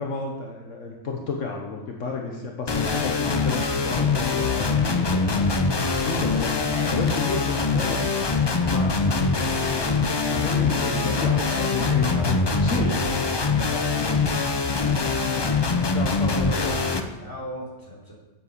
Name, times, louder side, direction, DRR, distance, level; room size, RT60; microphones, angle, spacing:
voice 1, 0.0-5.5 6.0-8.0 8.7-9.8 10.3-11.4 11.7-13.0 13.7-13.9 15.9-17.0, left 4 dB, 65° left, 1 dB, 1.4 m, -31 dB
sound 1, 2.7-17.0, left 4 dB, 35° left, 0.4 m, -23 dB
voice 2, 10.7-12.9 13.8-14.4 17.2-18.1, left 1 dB, 15° left, -6 dB, 3.2 m, -37 dB
8.0 x 7.6 x 6.7 m, 1.1 s
omnidirectional pair, 1.4 m